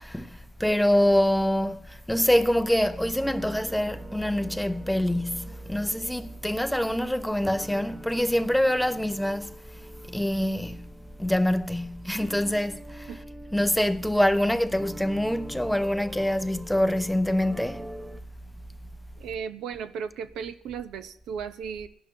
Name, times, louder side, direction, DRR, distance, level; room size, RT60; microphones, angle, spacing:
voice 1, 0.0-9.5 10.1-10.9 11.2-13.1 13.5-17.9, left 1 dB, 5° left, 0.6 m, -25 dB
sound 1, 2.2-18.2, right 1 dB, 20° right, 1.0 m, -46 dB
voice 2, 19.2-21.9, right 7 dB, 80° right, 0.8 m, -35 dB
20.0 x 11.5 x 2.8 m
cardioid pair, 100°, 0 cm